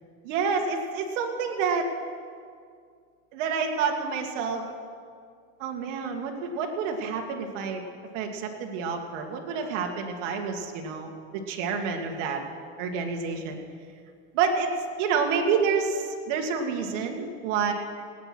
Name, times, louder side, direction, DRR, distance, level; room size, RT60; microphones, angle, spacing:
voice 1, 0.2-1.9 3.3-4.7 5.6-7.8 8.1-12.4 12.8-13.6 14.3-14.7 15.0-17.7, right 5 dB, 70° right, 3 dB, 2.0 m, -28 dB
17.5 x 9.3 x 6.2 m, 2.2 s
supercardioid pair, 130°, 38 cm